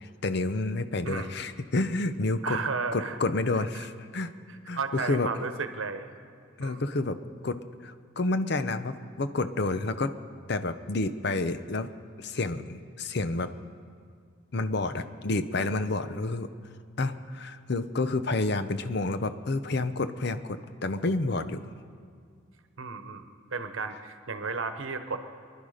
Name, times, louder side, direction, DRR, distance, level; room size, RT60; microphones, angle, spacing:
voice 1, 0.0-2.6 2.9-4.3 4.7-5.3 6.6-10.1 10.5-11.9 12.2-13.5 14.5-16.5 17.0-21.6, left 2 dB, 55° left, 11 dB, 0.7 m, -29 dB
voice 2, 2.4-3.2 3.5-3.9 4.5-6.1 6.6-6.8 22.8-25.2, right 4 dB, 80° right, 8 dB, 1.0 m, -34 dB
24.5 x 11.5 x 5.0 m, 2.1 s
head